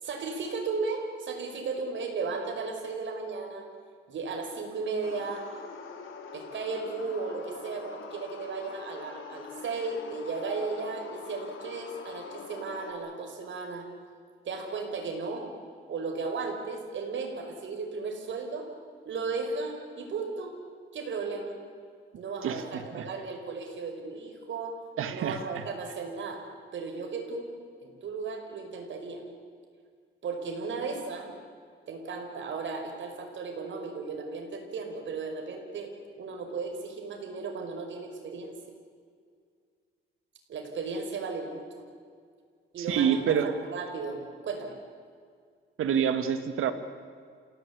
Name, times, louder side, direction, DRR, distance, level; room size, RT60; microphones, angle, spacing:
voice 1, 0.0-3.7 4.1-5.5 6.3-13.9 14.4-15.5 15.9-18.7 19.1-20.6 20.9-21.6 22.2-24.7 25.1-26.4 26.7-27.5 27.8-29.2 30.2-31.3 31.9-38.6 40.5-41.7 42.7-44.7, right 4 dB, 65° right, 3 dB, 5.5 m, -35 dB
sound 1, 5.0-12.9, left 5 dB, 70° left, 3.3 m, -44 dB
voice 2, 22.4-23.1 25.0-25.6 42.8-43.5 45.8-46.7, right 8 dB, 80° right, 9 dB, 2.2 m, -27 dB
28.5 x 17.5 x 8.6 m, 2.1 s
cardioid pair, 120°, 21 cm